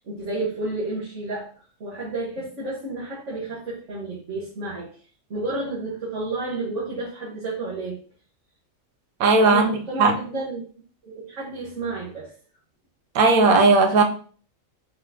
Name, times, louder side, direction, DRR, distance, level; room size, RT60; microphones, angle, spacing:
voice 1, 0.0-1.5 1.8-4.9 5.3-8.0 9.4-10.6 11.0-12.3, right 2 dB, 60° right, 1.7 m, -31 dB
voice 2, 9.2-10.2 13.1-14.0, right 3 dB, 85° right, 1.2 m, -17 dB
4.3 x 4.2 x 2.8 m
omnidirectional pair, 1.5 m